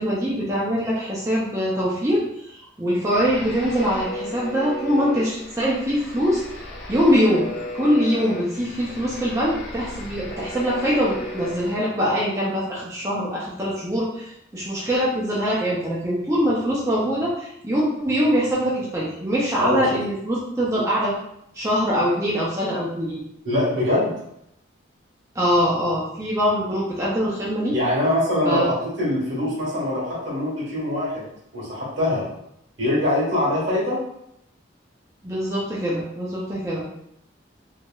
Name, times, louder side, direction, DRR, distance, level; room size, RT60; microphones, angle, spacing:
voice 1, 0.0-6.4 6.9-7.5 7.7-21.1 21.5-23.2 25.3-27.7 28.4-28.7 35.2-36.9, equal, 15° right, -7 dB, 0.4 m, -23 dB
sound 1, 3.1-11.8, left 1 dB, 60° left, 0.5 m, -35 dB
voice 2, 23.4-24.1 27.7-31.3 31.5-32.2 32.8-34.0, left 1 dB, 70° right, -6 dB, 1.4 m, -23 dB
3.0 x 2.8 x 2.2 m, 0.78 s
head